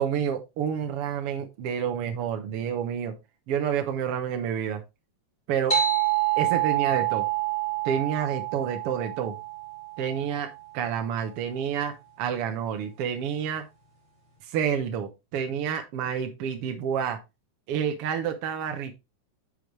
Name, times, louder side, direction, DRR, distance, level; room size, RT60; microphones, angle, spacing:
voice 1, 0.0-3.1 3.5-4.8 5.5-5.7 6.4-7.2 7.8-9.4 10.0-10.5 10.7-13.7 14.5-17.2 17.7-18.9, right 8 dB, 70° right, 6 dB, 1.4 m, -29 dB
sound 1, 5.7-10.7, right 12 dB, 10° left, 1.9 m, -27 dB
9.0 x 6.4 x 3.2 m, 0.24 s
omnidirectional pair, 3.9 m